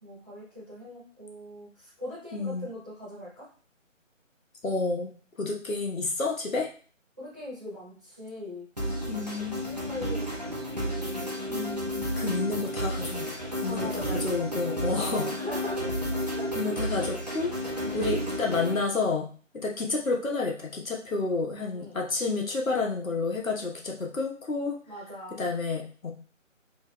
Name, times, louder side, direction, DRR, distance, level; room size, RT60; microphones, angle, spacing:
voice 1, 0.0-3.5 7.2-8.7 9.4-11.3 13.6-14.5 14.9-16.9 17.8-18.2 21.7-22.0 24.9-25.5, left 1 dB, 15° right, -12 dB, 1.2 m, -41 dB
voice 2, 2.3-2.7 4.6-5.1 5.4-6.7 9.1-9.6 11.5-13.3 13.6-15.3 16.5-19.3 19.5-24.8 25.4-26.1, left 3 dB, 85° left, 0 dB, 1.2 m, -30 dB
sound 1, 8.8-18.8, equal, 30° right, 0.6 m, -32 dB
5.6 x 2.8 x 2.2 m, 0.42 s
figure-of-eight pair, 180°, 39 cm